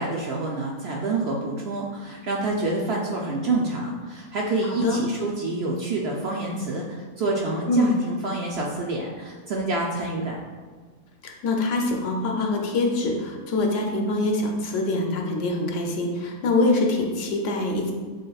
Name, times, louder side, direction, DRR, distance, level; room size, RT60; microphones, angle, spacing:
voice 1, 0.0-10.4, right 2 dB, 65° right, -1 dB, 0.6 m, -27 dB
voice 2, 11.2-17.9, left 2 dB, 65° left, 1 dB, 0.9 m, -24 dB
7.6 x 3.0 x 2.3 m, 1.5 s
omnidirectional pair, 1.5 m